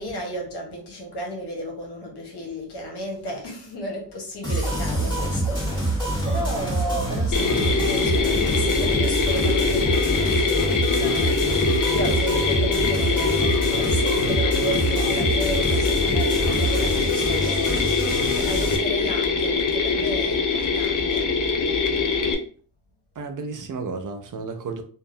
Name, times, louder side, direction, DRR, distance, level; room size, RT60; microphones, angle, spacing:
voice 1, 0.0-5.7 6.2-11.4 11.9-17.9 18.3-21.3, right 1 dB, 75° left, 1.1 m, -34 dB
sound 1, 4.4-18.8, right 1 dB, 10° left, 1.4 m, -26 dB
sound 2, 4.6-9.0, equal, 10° right, 0.6 m, -34 dB
Mechanisms, 7.3-22.3, left 4 dB, 50° left, 0.6 m, -23 dB
voice 2, 23.2-24.8, right 4 dB, 50° right, 0.5 m, -32 dB
2.8 x 2.2 x 2.6 m
cardioid pair, 55°, 40 cm